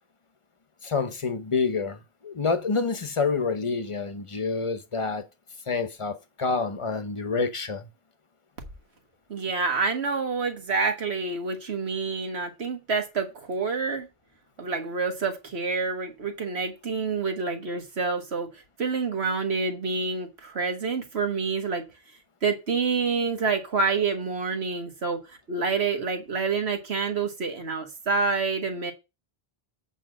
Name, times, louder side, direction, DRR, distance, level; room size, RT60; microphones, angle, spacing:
voice 1, 0.8-5.3 5.7-7.9, left 4 dB, 30° left, 0.8 m, -28 dB
voice 2, 9.3-14.1 14.6-18.5 18.8-21.9 22.4-25.2 25.5-28.9, right 4 dB, 75° right, 1.8 m, -27 dB
8.2 x 4.2 x 6.2 m
omnidirectional pair, 1.1 m